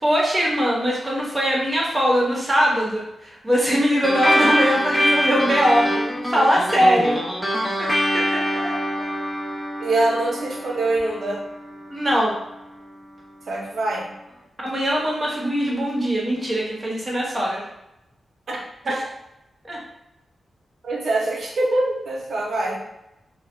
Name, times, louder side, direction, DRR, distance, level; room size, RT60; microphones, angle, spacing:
voice 1, 0.0-5.9 6.3-7.2 7.8-7.9 8.1-9.1 11.9-12.3 14.6-17.7 19.6-19.8, equal, 20° right, -4 dB, 0.8 m, -21 dB
sound 1, 4.0-12.9, equal, 5° left, 0.5 m, -24 dB
voice 2, 9.8-11.4 13.5-14.1 18.5-19.0 20.8-22.8, right 2 dB, 70° right, -2 dB, 0.6 m, -24 dB
2.3 x 2.0 x 3.0 m, 0.88 s
wide cardioid pair, 100°, 0 cm